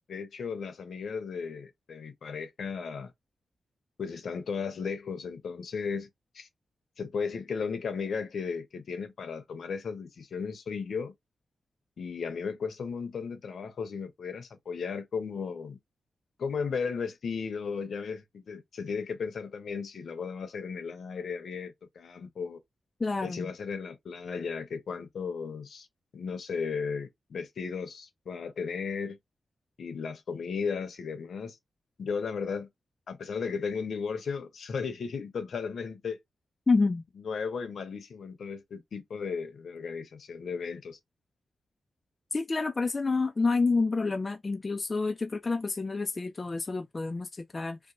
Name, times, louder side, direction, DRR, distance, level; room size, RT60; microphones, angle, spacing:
voice 1, 0.1-3.1 4.0-6.1 6.3-6.5 7.0-11.1 12.0-15.8 16.4-22.6 23.2-25.9 26.1-29.2 29.8-31.6 32.0-32.7 33.1-36.2 37.2-41.0, left 5 dB, 75° left, 0.7 m, -35 dB
voice 2, 23.0-23.5 36.7-37.0 42.3-47.8, left 3 dB, 35° left, 0.4 m, -28 dB
2.9 x 2.1 x 2.6 m
cardioid pair, 70°, 0 cm